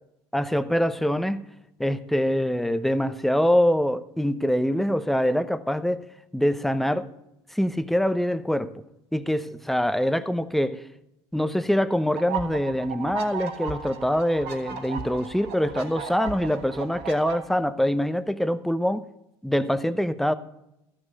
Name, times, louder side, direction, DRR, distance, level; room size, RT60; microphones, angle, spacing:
voice 1, 0.3-1.4 1.8-6.1 6.3-7.1 7.5-8.7 9.1-10.9 11.3-19.0 19.4-20.3, equal, ahead, 0.8 m, -24 dB
sound 1, 12.2-17.4, right 7 dB, 75° right, 3.0 m, -35 dB
13.5 x 6.3 x 6.6 m
supercardioid pair, 85°, 13 cm